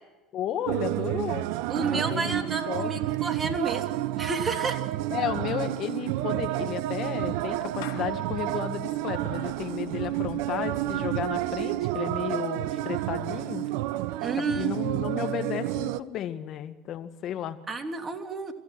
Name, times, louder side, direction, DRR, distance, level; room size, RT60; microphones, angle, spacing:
voice 1, 0.3-1.5 1.9-2.9 5.1-13.7 14.4-17.6, left 10 dB, 55° left, 9 dB, 1.9 m, -33 dB
sound 1, 0.7-16.0, right 15 dB, 75° right, 0.8 m, -30 dB
voice 2, 1.7-3.8 4.2-4.8 14.2-14.8 17.7-18.5, right 3 dB, 25° right, 4 dB, 3.2 m, -31 dB
Clapping / Meow, 5.9-12.3, left 9 dB, 80° left, 2.9 m, -51 dB
28.0 x 15.0 x 6.2 m, 1.2 s
hypercardioid pair, 80°, 0 cm